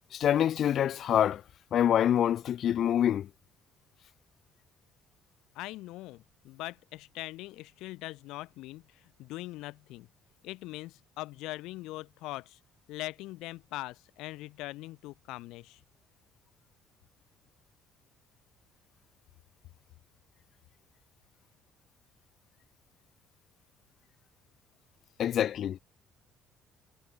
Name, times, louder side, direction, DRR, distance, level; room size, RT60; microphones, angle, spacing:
voice 1, 0.1-1.4 1.7-3.3 25.2-25.8, left 10 dB, 55° left, 1.2 m, -26 dB
voice 2, 5.5-10.1 10.4-12.6 12.9-15.8, left 18 dB, 80° left, 4.9 m, -41 dB
cardioid pair, 100°, 0 cm